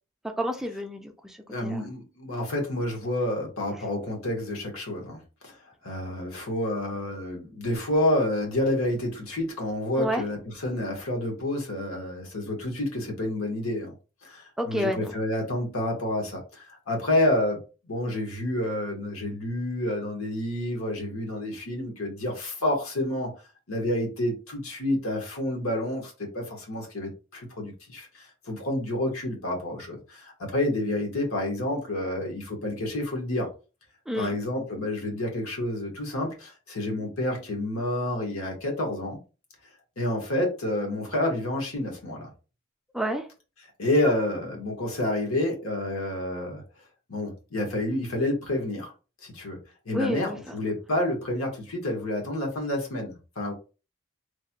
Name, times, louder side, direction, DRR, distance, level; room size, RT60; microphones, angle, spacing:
voice 1, 0.4-1.4 1.6-1.8 10.0-10.2 14.6-15.1 34.1-34.3 42.9-43.2 49.9-50.4, equal, ahead, 4 dB, 0.3 m, -29 dB
voice 2, 1.5-5.5 5.8-13.9 14.2-23.3 23.7-33.5 34.2-39.2 40.0-42.3 43.8-46.6 47.1-48.9 49.2-49.6 49.8-53.5, left 1 dB, 90° left, 1 dB, 1.2 m, -29 dB
3.2 x 2.2 x 2.8 m, 0.32 s
head